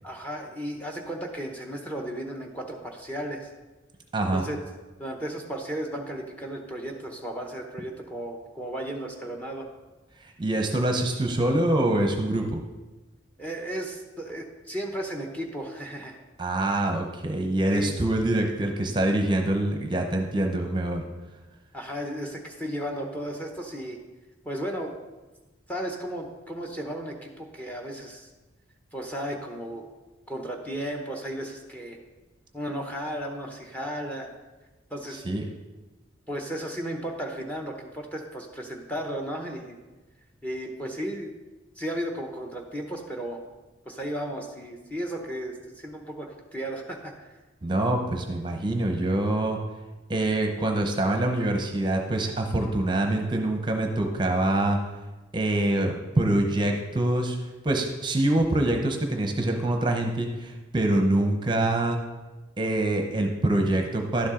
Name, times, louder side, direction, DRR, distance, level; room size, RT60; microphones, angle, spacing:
voice 1, 0.0-3.5 4.3-4.7 5.0-9.7 13.4-16.2 17.7-17.9 21.7-24.0 24.4-24.9 25.7-28.3 28.9-29.9 30.3-32.0 32.5-34.3 34.9-35.2 36.3-39.8 40.4-41.3 41.8-43.4 43.9-47.4, right 1 dB, 10° left, 2 dB, 0.8 m, -34 dB
voice 2, 10.2-12.6 16.4-21.0 35.1-35.4 47.6-49.6 50.1-54.8 55.3-57.4 57.6-62.0 62.6-64.3, right 1 dB, 25° right, 3 dB, 0.8 m, -25 dB
11.5 x 7.1 x 3.7 m, 1.2 s
head